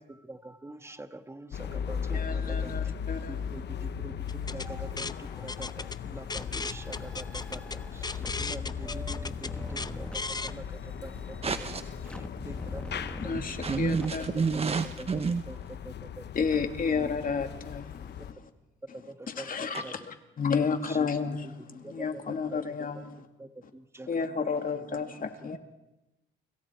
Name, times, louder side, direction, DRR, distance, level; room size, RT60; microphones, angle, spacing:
voice 1, 0.0-2.7 3.3-4.1 4.5-11.5 12.0-12.8 13.2-14.4 15.0-15.6 15.8-16.2 17.0-17.2 18.9-19.9 20.8-21.1 21.8-22.6 22.9-24.1 24.4-24.8, right 2 dB, 15° right, 9 dB, 1.6 m, -45 dB
sound 1, 1.5-18.3, left 8 dB, 60° left, 1.1 m, -38 dB
voice 2, 2.1-3.6 12.1-12.7 13.2-14.4 16.3-18.5 19.3-23.2 24.1-25.6, left 5 dB, 45° left, 6 dB, 2.6 m, -32 dB
sound 2, 4.3-10.5, left 3 dB, 20° left, 0.8 m, -37 dB
sound 3, 6.3-14.1, left 1 dB, 5° left, 1.4 m, -42 dB
voice 3, 11.4-11.8 13.3-15.4 19.7-19.8, right 5 dB, 30° right, 11 dB, 0.8 m, -29 dB
29.0 x 26.5 x 4.7 m, 0.97 s
cardioid pair, 90°, 20 cm